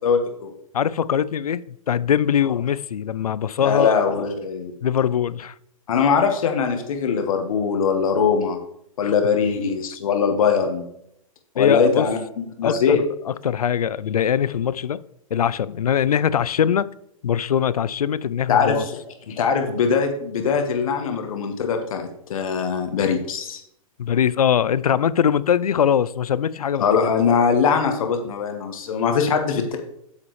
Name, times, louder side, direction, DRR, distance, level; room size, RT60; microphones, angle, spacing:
voice 1, 0.0-0.5 3.6-4.7 5.9-8.6 9.0-10.9 11.5-12.2 12.6-13.0 18.5-19.0 19.3-23.6 26.8-29.8, left 6 dB, 70° left, 1.4 m, -21 dB
voice 2, 0.7-3.9 4.8-5.5 9.0-9.1 11.6-12.1 12.6-15.0 15.3-16.9 17.2-18.9 24.0-26.9, left 8 dB, 90° left, 0.4 m, -22 dB
8.5 x 7.3 x 3.2 m
hypercardioid pair, 120°, 18 cm